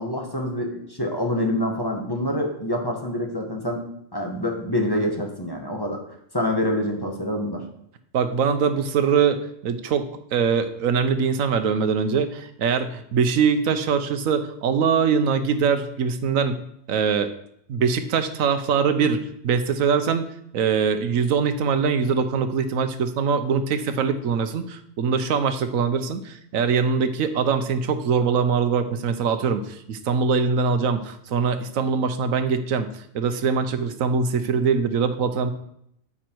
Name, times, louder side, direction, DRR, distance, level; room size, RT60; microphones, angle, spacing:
voice 1, 0.0-3.8 4.1-6.0 6.3-7.6, left 1 dB, 20° left, 1 dB, 1.3 m, -26 dB
voice 2, 8.1-16.6 16.9-17.3 17.7-20.3 20.5-32.9 33.1-35.5, right 6 dB, 90° right, 10 dB, 1.2 m, -23 dB
9.3 x 7.3 x 4.6 m, 0.73 s
omnidirectional pair, 1.4 m